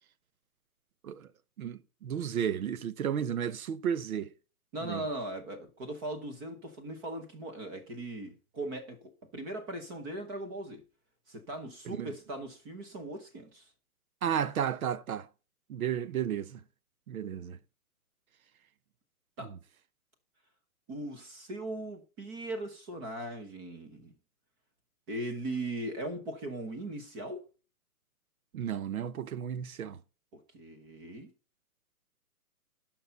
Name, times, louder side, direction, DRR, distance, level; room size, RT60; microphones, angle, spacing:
voice 1, 1.6-4.3 4.8-5.0 11.9-12.1 14.2-15.3 15.7-16.6 17.1-17.6 19.4-19.6 28.5-30.0, right 8 dB, 70° right, 0.9 m, -33 dB
voice 2, 4.7-10.8 11.3-13.7 19.4-19.5 20.9-24.1 25.1-27.4 30.3-31.3, right 1 dB, 15° right, 0.7 m, -39 dB
10.5 x 5.8 x 5.6 m
hypercardioid pair, 150°, 44 cm